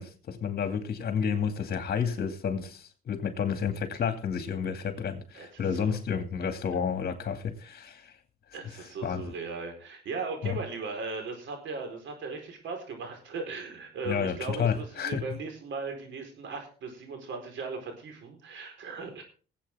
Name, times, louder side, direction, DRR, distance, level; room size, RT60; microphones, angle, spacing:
voice 1, 0.0-8.1 9.0-9.3 10.4-10.6 14.0-15.2, left 7 dB, 50° left, 2.4 m, -30 dB
voice 2, 5.3-6.0 8.5-19.2, right 4 dB, 70° right, 4.6 m, -38 dB
20.0 x 8.4 x 3.7 m
cardioid pair, 90°, 20 cm